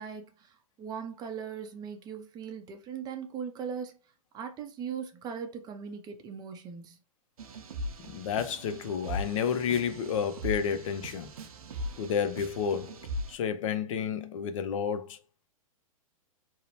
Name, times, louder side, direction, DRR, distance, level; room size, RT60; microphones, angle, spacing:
voice 1, 0.0-4.0 4.3-7.0, right 7 dB, 20° right, 0.5 m, -39 dB
sound 1, 7.4-13.4, equal, 80° right, 0.5 m, -39 dB
voice 2, 8.0-11.3 12.0-13.0 13.3-15.2, left 7 dB, 65° left, 0.5 m, -30 dB
2.8 x 2.0 x 2.7 m
hypercardioid pair, 125°, 18 cm